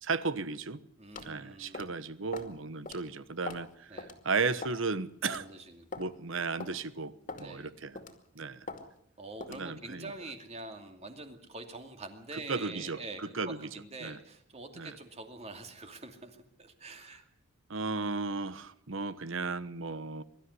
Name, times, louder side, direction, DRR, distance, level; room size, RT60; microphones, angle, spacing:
voice 1, 0.0-0.8 1.2-5.4 6.0-8.0 8.3-8.7 9.5-10.1 12.3-13.6 14.0-14.2 14.8-15.0 17.7-20.2, right 4 dB, 65° right, 15 dB, 1.1 m, -35 dB
voice 2, 1.0-1.9 3.9-4.1 5.2-5.9 7.4-7.7 9.2-17.2, right 2 dB, 30° right, 5 dB, 2.6 m, -45 dB
sound 1, 1.2-1.3 1.7-2.0 2.3-2.5 2.9-3.0 3.5-3.7 4.0-4.1 4.6-4.9 5.3-5.4 5.9-6.1 6.6-6.8 7.3-7.5 8.0-8.2 8.7-8.8 9.4-9.6, left 3 dB, 40° left, 2.4 m, -41 dB
23.0 x 13.0 x 9.7 m, 0.72 s
head